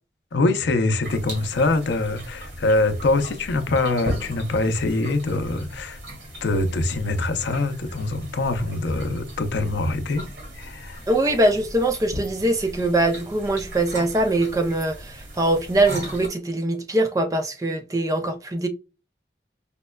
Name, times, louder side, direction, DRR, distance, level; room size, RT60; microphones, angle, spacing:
voice 1, 0.3-6.0 6.4-10.3 10.5-11.0, left 2 dB, 80° left, 0.5 m, -24 dB
sound 1, 1.0-16.3, equal, 75° right, 1.7 m, -38 dB
voice 2, 11.1-18.7, right 1 dB, 20° right, 0.4 m, -22 dB
5.2 x 2.1 x 2.2 m
head